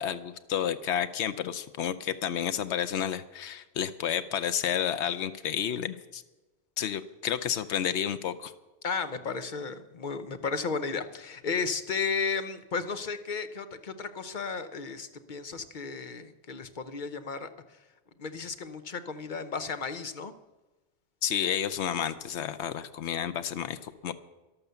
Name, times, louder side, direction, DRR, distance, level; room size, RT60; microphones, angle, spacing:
voice 1, 0.0-6.2 6.8-8.5 21.2-24.1, left 9 dB, 90° left, 11 dB, 1.0 m, -31 dB
voice 2, 8.8-17.5 18.2-20.3, left 5 dB, 50° left, 9 dB, 1.0 m, -34 dB
12.5 x 11.5 x 6.9 m, 1.1 s
omnidirectional pair, 1.1 m